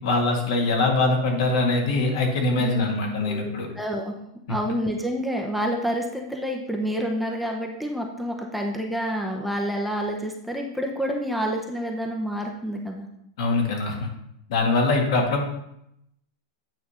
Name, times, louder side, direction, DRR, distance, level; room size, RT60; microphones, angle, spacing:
voice 1, 0.0-3.7 13.4-14.1 14.5-15.4, left 3 dB, 65° left, 1 dB, 1.9 m, -23 dB
voice 2, 2.6-2.9 3.2-3.5 3.8-4.1 4.5-13.1, equal, ahead, 0 dB, 0.8 m, -28 dB
8.8 x 3.4 x 5.6 m, 0.79 s
supercardioid pair, 140°, 3 cm